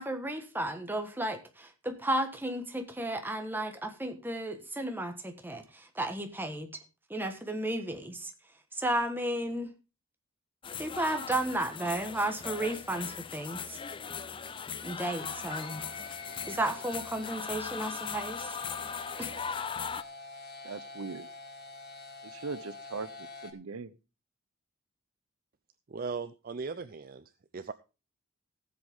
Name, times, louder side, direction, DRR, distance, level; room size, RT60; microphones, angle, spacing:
voice 1, 0.0-6.7 7.1-8.3 8.7-9.7 10.8-13.8 14.8-15.8 16.5-18.6 19.2-19.4, right 1 dB, 10° right, 1.3 m, -33 dB
sound 1, 10.6-20.0, left 6 dB, 25° left, 0.5 m, -39 dB
sound 2, 15.0-23.5, left 3 dB, 50° left, 1.6 m, -46 dB
voice 2, 20.6-21.3 22.2-23.9, right 4 dB, 80° right, 0.7 m, -40 dB
voice 3, 25.9-27.7, right 4 dB, 45° right, 0.5 m, -38 dB
17.5 x 7.7 x 3.6 m
head